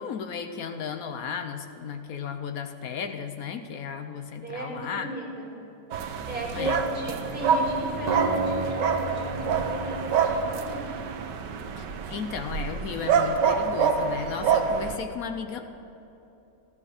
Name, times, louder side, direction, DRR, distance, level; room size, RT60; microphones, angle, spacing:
voice 1, 0.0-5.1 6.5-6.8 11.8-15.7, left 6 dB, 60° left, 7 dB, 1.0 m, -35 dB
voice 2, 4.4-5.5 6.2-11.0, equal, 5° right, -5 dB, 3.8 m, -36 dB
sound 1, 5.9-15.0, right 6 dB, 75° right, 1.5 m, -27 dB
Acoustic guitar, 8.1-11.2, right 2 dB, 30° right, 0.9 m, -33 dB
13.0 x 12.5 x 6.6 m, 2.9 s
omnidirectional pair, 1.9 m